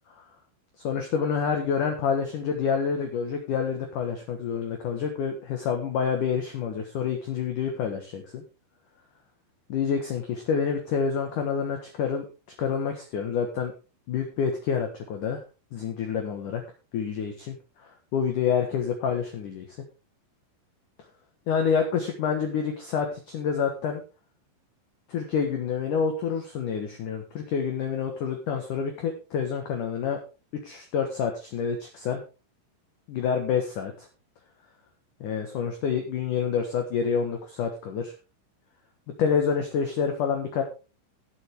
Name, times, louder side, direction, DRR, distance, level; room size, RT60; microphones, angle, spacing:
voice 1, 0.8-8.4 9.7-12.2 12.6-13.7 14.1-15.4 15.7-16.6 16.9-17.6 18.1-19.6 21.5-24.0 25.1-30.2 30.6-32.2 33.1-34.1 35.2-38.1 39.2-40.6, left 6 dB, 65° left, 4 dB, 2.1 m, -27 dB
17.0 x 7.6 x 3.5 m, 0.32 s
omnidirectional pair, 5.6 m